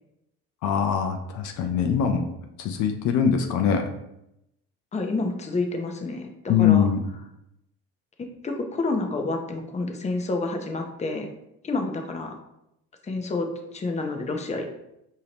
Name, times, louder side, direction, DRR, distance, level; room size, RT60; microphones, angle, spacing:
voice 1, 0.6-2.3 2.6-3.8 6.5-7.0, left 8 dB, 65° left, 5 dB, 0.6 m, -22 dB
voice 2, 4.9-6.9 8.2-11.3 11.6-12.4 13.0-14.6, left 3 dB, 20° left, 3 dB, 0.7 m, -29 dB
4.9 x 2.8 x 2.9 m, 0.83 s
supercardioid pair, 80°, 31 cm